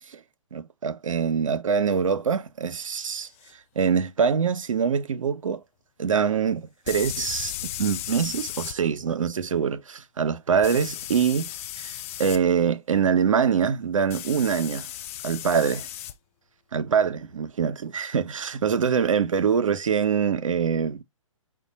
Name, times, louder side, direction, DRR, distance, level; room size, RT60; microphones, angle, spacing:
voice 1, 0.5-3.3 3.8-5.6 6.0-7.5 7.8-11.5 11.8-14.9 15.2-15.9 16.7-21.0, right 6 dB, 70° right, 0.6 m, -24 dB
sound 1, 3.4-3.5 6.9-8.8 10.6-12.4 14.1-16.1, left 13 dB, 25° left, 0.3 m, -35 dB
5.1 x 2.2 x 4.1 m
figure-of-eight pair, 125°, 17 cm